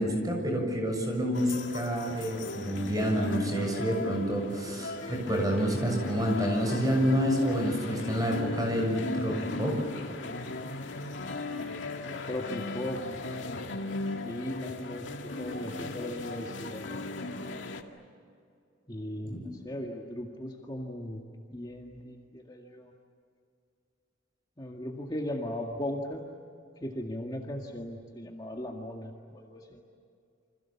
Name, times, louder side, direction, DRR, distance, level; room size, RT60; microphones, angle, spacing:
voice 1, 0.0-9.8 19.2-19.4, equal, 20° right, 2 dB, 6.9 m, -28 dB
sound 1, 1.3-17.8, left 2 dB, 80° left, 2.2 m, -37 dB
voice 2, 12.2-13.0 14.2-15.1 15.4-16.9 18.9-21.2 21.5-22.9 24.6-26.2 26.8-29.8, left 1 dB, 20° left, 0 dB, 2.0 m, -37 dB
29.5 x 26.5 x 7.3 m, 2.4 s
head